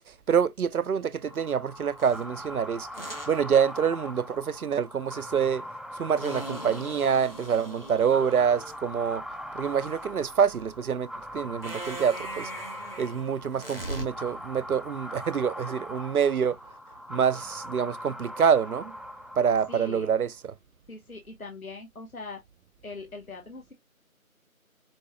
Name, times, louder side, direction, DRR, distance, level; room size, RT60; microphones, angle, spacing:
voice 1, 0.3-2.9 3.3-5.6 6.0-9.2 9.5-12.5 13.0-16.6 17.1-18.9 19.4-20.5, right 7 dB, 80° right, 0.5 m, -26 dB
sound 1, 1.2-20.1, equal, ahead, 0.3 m, -41 dB
sound 2, 2.0-2.2 2.9-3.3 6.2-8.7 11.6-14.0, right 1 dB, 40° left, 1.0 m, -40 dB
voice 2, 19.7-20.1 20.9-22.4 22.8-23.7, left 3 dB, 75° left, 1.0 m, -41 dB
5.3 x 2.3 x 2.8 m
figure-of-eight pair, 175°, 43 cm